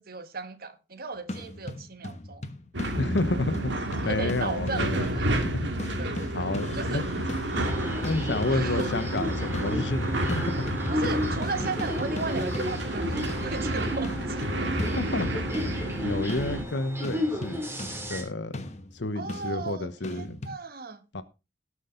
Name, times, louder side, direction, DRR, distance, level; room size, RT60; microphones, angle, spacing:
voice 1, 0.0-2.4 4.0-5.4 6.0-7.1 8.5-8.9 10.9-14.5 19.1-21.0, right 3 dB, 55° right, 1.4 m, -36 dB
sound 1, 1.2-7.7 8.0-10.0 10.3-20.6, left 1 dB, 40° left, 1.2 m, -40 dB
sound 2, 2.7-16.6, right 1 dB, 80° right, 2.2 m, -30 dB
voice 2, 3.0-3.7 4.0-5.0 5.3-5.7 6.3-7.3 8.0-10.7 14.8-15.3 15.7-18.7 18.9-20.4 21.1-21.2, left 2 dB, 75° left, 1.1 m, -30 dB
sound 3, 7.5-18.2, left 1 dB, 15° right, 2.9 m, -34 dB
18.5 x 6.3 x 3.9 m
head